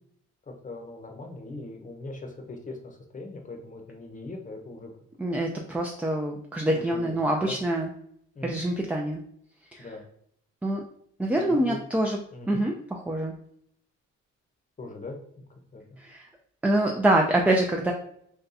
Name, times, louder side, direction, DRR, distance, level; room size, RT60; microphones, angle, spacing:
voice 1, 0.4-4.9 6.7-7.2 7.4-7.6 8.3-8.6 9.8-10.0 11.4-11.8 12.3-12.6 14.8-15.8, left 2 dB, 25° left, 3 dB, 0.7 m, -40 dB
voice 2, 5.2-7.9 8.4-9.2 9.7-9.9 10.6-10.8 11.2-12.2 12.5-13.3 16.0-16.3 16.6-17.9, right 1 dB, 5° right, 1 dB, 0.3 m, -25 dB
2.6 x 2.3 x 3.9 m, 0.69 s
cardioid pair, 90°, 30 cm